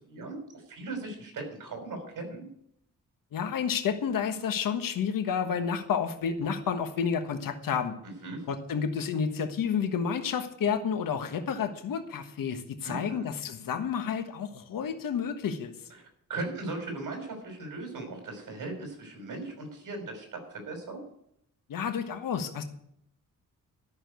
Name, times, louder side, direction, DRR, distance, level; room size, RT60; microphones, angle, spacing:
voice 1, 0.7-2.5 8.0-8.4 12.8-13.3 16.0-21.0, right 2 dB, 70° right, 3 dB, 5.5 m, -38 dB
voice 2, 3.3-8.0 8.5-15.7 21.7-22.6, left 7 dB, 90° left, 7 dB, 1.4 m, -30 dB
13.0 x 6.7 x 9.4 m, 0.73 s
wide cardioid pair, 135°, 32 cm